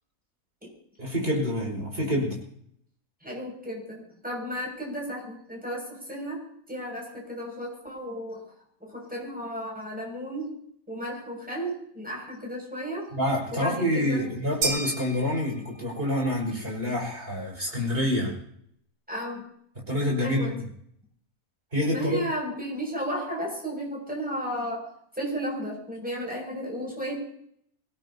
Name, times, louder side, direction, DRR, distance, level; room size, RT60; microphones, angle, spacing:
voice 1, 1.0-2.4 13.1-18.4 19.8-20.6 21.7-22.3, left 1 dB, 40° right, -1 dB, 5.7 m, -27 dB
voice 2, 3.2-6.4 6.7-8.4 8.8-10.5 10.9-13.1 13.5-14.3 19.1-19.4 20.2-20.5 21.9-24.9 25.1-27.2, equal, 5° right, -1 dB, 6.5 m, -33 dB
sound 1, 14.6-16.1, right 2 dB, 65° right, 2.2 m, -32 dB
24.5 x 17.0 x 2.9 m, 0.68 s
omnidirectional pair, 1.5 m